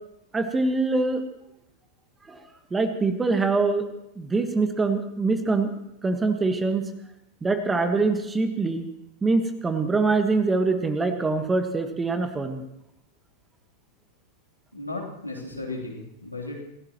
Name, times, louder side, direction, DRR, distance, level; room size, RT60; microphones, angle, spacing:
voice 1, 0.3-1.2 2.3-2.4 2.7-3.9 4.2-6.9 7.4-8.9 9.2-12.6, right 3 dB, 15° right, 8 dB, 1.5 m, -24 dB
voice 2, 14.7-16.6, left 2 dB, 90° left, -3 dB, 3.3 m, -35 dB
27.0 x 16.0 x 3.0 m, 0.81 s
figure-of-eight pair, 90°, 0 cm